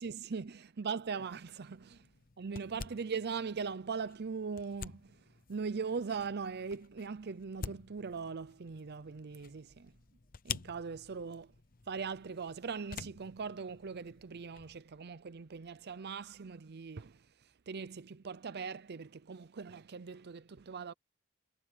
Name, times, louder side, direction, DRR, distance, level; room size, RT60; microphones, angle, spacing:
voice 1, 0.0-2.1 2.4-5.2 5.5-9.9 10.4-11.5 11.9-17.3 17.7-20.9, right 5 dB, 50° right, 0.6 m, -40 dB
sound 1, 1.2-14.8, left 6 dB, 45° left, 0.8 m, -49 dB
sound 2, 6.1-17.3, equal, 10° left, 4.1 m, -75 dB
head